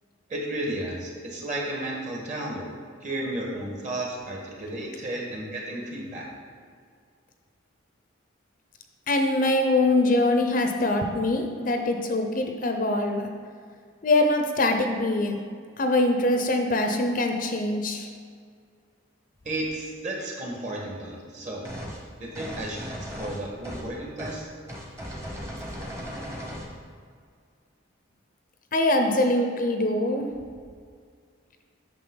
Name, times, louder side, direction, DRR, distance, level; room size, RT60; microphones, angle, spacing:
voice 1, 0.3-2.7 3.0-6.2 19.4-21.6 22.2-24.5, right 1 dB, 35° right, -2 dB, 1.6 m, -33 dB
voice 2, 9.1-13.3 14.0-15.4 15.8-18.1 28.7-30.3, left 2 dB, 40° left, 5 dB, 0.6 m, -23 dB
sound 1, 21.6-22.0 22.3-23.9 24.2-24.4 24.7-26.7, equal, 15° right, 1.1 m, -37 dB
8.8 x 6.3 x 3.9 m, 2.1 s
head